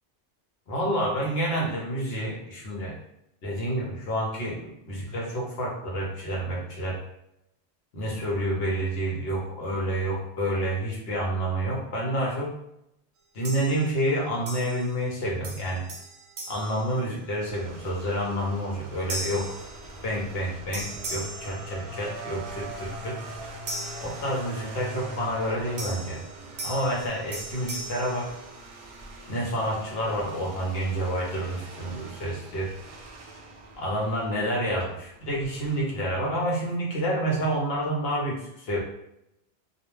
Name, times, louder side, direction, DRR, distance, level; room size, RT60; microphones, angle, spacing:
voice 1, 0.7-3.0 3.4-7.0 7.9-12.5 13.3-15.9 16.5-19.5 20.0-23.2 24.0-26.2 26.6-28.3 29.3-32.7 33.8-38.8, right 1 dB, 70° left, -3 dB, 0.9 m, -29 dB
sound 1, 13.4-14.1 14.5-15.2 15.4-17.6 18.1-18.4 19.1-20.4 20.7-22.4 23.7-24.8 25.8-29.0, right 2 dB, 75° right, 0.8 m, -39 dB
sound 2, 17.4-35.8, right 2 dB, 60° right, 0.3 m, -43 dB
2.3 x 2.1 x 3.1 m, 0.81 s
omnidirectional pair, 1.1 m